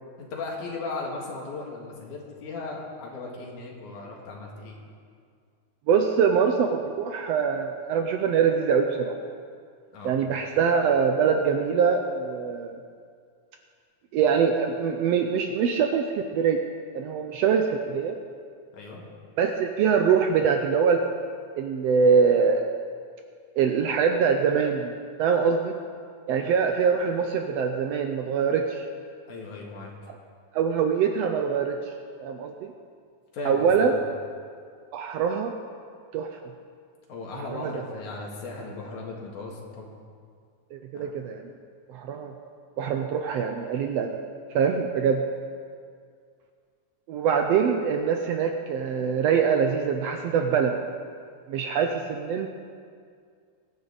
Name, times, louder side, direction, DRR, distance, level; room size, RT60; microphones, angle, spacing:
voice 1, 0.2-4.8 9.9-10.1 18.7-19.0 29.3-29.9 33.3-33.7 37.1-39.9 40.9-41.1, left 3 dB, 70° left, -1 dB, 3.1 m, -37 dB
voice 2, 5.9-9.2 10.0-12.8 14.1-16.0 16.3-16.6 16.9-18.1 19.4-21.0 21.5-22.7 23.6-24.9 25.2-25.7 26.3-28.8 30.1-30.2 30.5-31.8 32.2-32.7 33.4-34.0 34.9-35.5 36.1-36.4 37.4-37.7 40.7-41.4 41.9-42.3 42.8-44.2 44.5-45.2 47.1-50.8 51.5-52.5, right 6 dB, 80° right, 5 dB, 1.5 m, -23 dB
22.0 x 9.3 x 4.0 m, 2.2 s
omnidirectional pair, 3.6 m